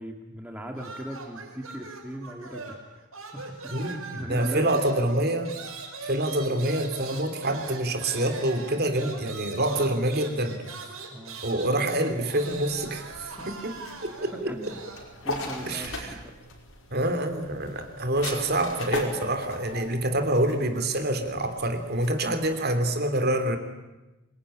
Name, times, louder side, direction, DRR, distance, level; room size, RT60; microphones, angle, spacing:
voice 1, 0.0-3.1 3.3-3.4 3.8-4.8 11.1-11.4 13.4-13.5 14.5-14.7 15.2-16.3, equal, 5° right, 2 dB, 2.5 m, -39 dB
sound 1, 0.7-2.9 3.1-15.1, right 4 dB, 70° right, 5.6 m, -41 dB
voice 2, 3.7-5.5 6.0-10.6 11.4-13.7 14.0-14.5 15.7-16.2 16.9-23.6, right 1 dB, 45° right, 7 dB, 2.9 m, -26 dB
sound 2, 12.4-22.5, left 2 dB, 65° left, 5.2 m, -39 dB
25.5 x 22.5 x 10.0 m, 1.1 s
head